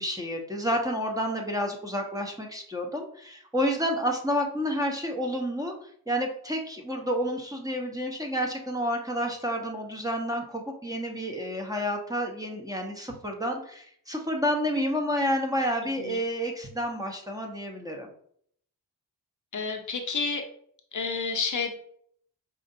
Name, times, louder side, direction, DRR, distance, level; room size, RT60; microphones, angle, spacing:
voice 1, 0.0-18.1, equal, 10° right, 2 dB, 0.9 m, -30 dB
voice 2, 19.5-20.4 20.9-21.7, left 5 dB, 50° left, 4 dB, 0.8 m, -30 dB
5.0 x 2.6 x 2.6 m, 0.64 s
cardioid pair, 50°, 40 cm